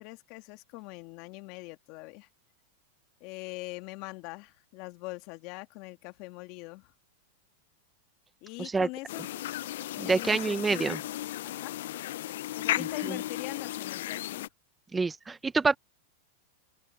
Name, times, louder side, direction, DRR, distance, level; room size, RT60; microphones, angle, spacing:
voice 1, 0.0-2.3 3.2-6.9 8.4-9.3 10.0-11.0 11.4-11.8 12.6-14.4, left 23 dB, 50° left, 2.1 m, -42 dB
sound 1, 9.1-14.5, left 14 dB, 70° left, 0.3 m, -35 dB
voice 2, 10.0-11.0 13.0-13.2 14.9-15.8, right 4 dB, 10° right, 0.5 m, -27 dB
open air
hypercardioid pair, 135°, 0 cm